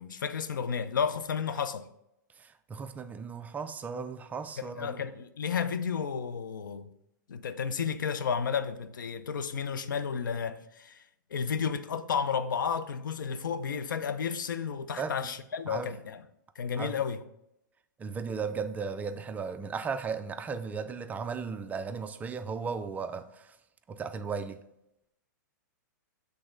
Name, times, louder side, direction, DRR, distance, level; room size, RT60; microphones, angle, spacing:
voice 1, 0.0-1.9 4.8-6.9 7.3-11.0 11.3-16.2 16.6-17.2, left 6 dB, 80° left, 0.5 m, -32 dB
voice 2, 2.4-5.0 15.0-15.3 15.7-15.9 16.8-17.0 18.0-23.6 23.9-24.6, right 5 dB, 15° right, 0.3 m, -36 dB
7.8 x 3.4 x 3.8 m
hypercardioid pair, 115°, 11 cm